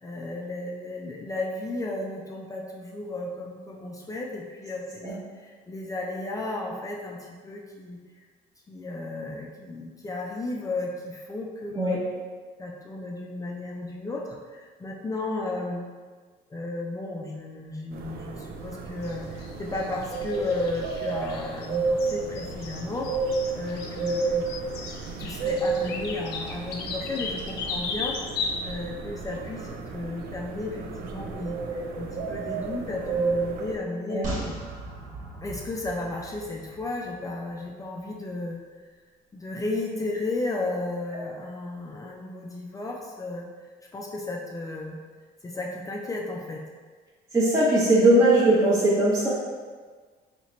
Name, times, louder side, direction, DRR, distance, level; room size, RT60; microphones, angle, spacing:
voice 1, 0.0-7.2 7.4-8.0 8.7-12.0 12.6-15.9 16.5-23.1 23.5-24.4 25.2-28.2 28.6-34.5 35.4-38.6 39.3-43.5 43.9-45.0 45.4-46.6, left 2 dB, 20° left, -1 dB, 0.4 m, -34 dB
sound 1, 17.9-33.8, right 4 dB, 65° right, 0.5 m, -32 dB
sound 2, 19.0-28.5, left 4 dB, 75° left, 0.5 m, -37 dB
sound 3, 34.2-37.7 38.0-38.1, right 2 dB, 50° right, 1.2 m, -38 dB
voice 2, 47.3-49.3, right 1 dB, 20° right, -7 dB, 0.8 m, -20 dB
2.9 x 2.8 x 4.3 m, 1.5 s
cardioid pair, 110°, 17 cm